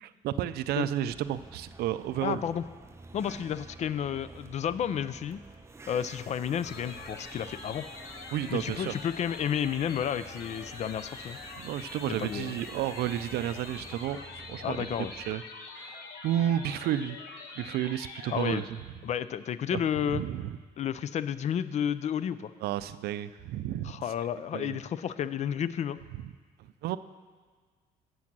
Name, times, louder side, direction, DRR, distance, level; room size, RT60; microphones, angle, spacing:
voice 1, 0.0-2.4 8.3-8.9 11.6-15.4 15.8-17.2 17.6-18.8 19.7-20.6 22.6-24.0 24.5-24.8 26.1-26.2 26.6-27.0, right 11 dB, 70° right, 14 dB, 0.4 m, -32 dB
sound 1, 1.1-15.3, right 3 dB, 15° right, 0.5 m, -49 dB
voice 2, 2.2-2.6 3.1-5.4 5.9-7.8 8.5-11.4 12.1-12.5 14.6-15.1 18.3-18.6 19.0-20.2 20.8-22.5 23.8-26.0, left 9 dB, 45° left, 15 dB, 0.4 m, -31 dB
sound 2, 6.6-18.6, left 4 dB, 80° left, 1.1 m, -45 dB
8.6 x 7.2 x 6.0 m, 1.5 s
cardioid pair, 110°, 17 cm